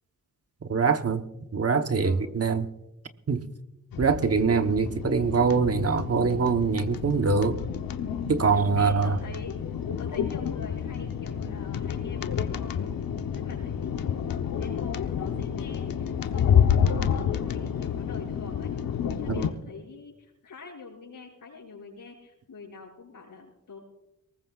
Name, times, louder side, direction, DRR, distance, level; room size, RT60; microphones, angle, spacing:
voice 1, 0.7-1.2 1.5-2.7 3.3-3.4 4.0-7.6 8.3-9.2 19.3-19.5, right 5 dB, 45° right, 1.1 m, -23 dB
sound 1, 3.9-19.5, left 8 dB, 90° left, 1.0 m, -29 dB
voice 2, 8.4-9.6 10.0-12.9 13.3-18.7 19.1-23.8, left 4 dB, 75° left, 6.2 m, -45 dB
23.5 x 20.0 x 2.4 m
cardioid pair, 90°, 34 cm